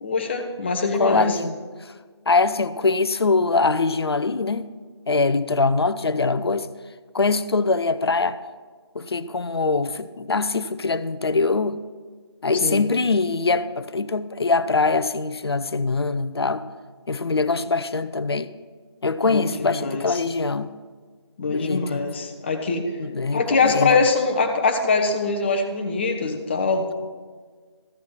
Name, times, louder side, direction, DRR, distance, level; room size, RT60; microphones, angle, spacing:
voice 1, 0.0-1.4 12.6-12.9 19.3-20.2 21.4-22.9 23.3-26.9, left 4 dB, 25° left, 5 dB, 0.8 m, -23 dB
voice 2, 0.9-1.5 1.8-1.9 2.3-4.6 5.1-6.7 7.1-8.4 8.9-11.8 12.4-16.6 17.1-18.5 19.0-20.7 21.4-22.1 23.0-24.0, left 3 dB, 60° left, 14 dB, 0.6 m, -23 dB
14.0 x 7.1 x 4.6 m, 1.5 s
figure-of-eight pair, 160°, 15 cm